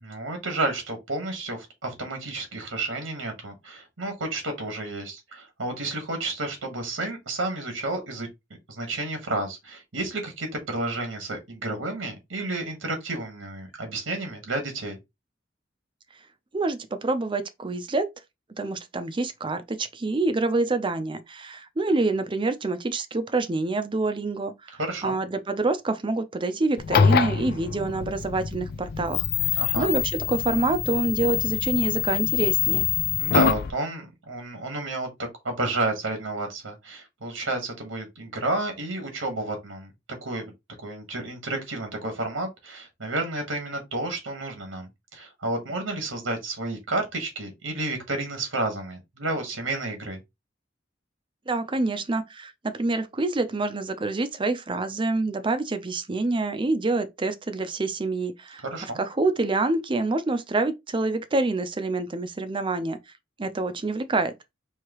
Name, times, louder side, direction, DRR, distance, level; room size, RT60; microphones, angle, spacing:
voice 1, 0.0-8.3 8.7-15.0 24.8-25.2 29.6-29.9 33.2-35.1 35.4-39.9 40.2-40.5 40.8-50.2 58.6-59.0, right 2 dB, 90° right, 1.4 m, -31 dB
voice 2, 16.5-18.1 18.6-24.5 25.0-30.0 30.3-32.9 51.5-58.6 59.0-63.0 63.4-64.3, right 2 dB, 25° right, 0.5 m, -26 dB
sound 1, 26.8-33.7, left 8 dB, 55° left, 0.4 m, -25 dB
4.6 x 2.8 x 3.0 m
head